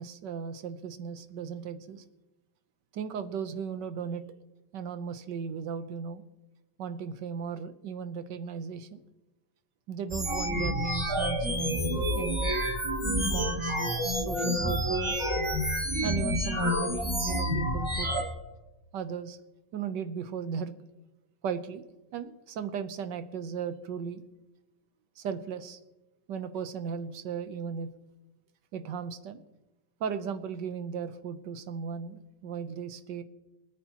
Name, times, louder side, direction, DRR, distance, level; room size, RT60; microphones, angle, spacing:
voice 1, 0.0-2.0 2.9-4.2 4.7-6.2 6.8-9.0 9.9-12.6 13.3-13.8 14.0-15.3 16.0-18.1 18.9-19.4 19.7-20.8 21.4-21.8 22.1-24.2 25.2-25.8 26.3-27.9 28.7-29.4 30.0-33.2, right 6 dB, 80° right, 11 dB, 1.6 m, -36 dB
sound 1, 10.1-18.2, equal, 15° right, 1.7 m, -29 dB
24.0 x 9.6 x 3.0 m, 1.1 s
omnidirectional pair, 1.9 m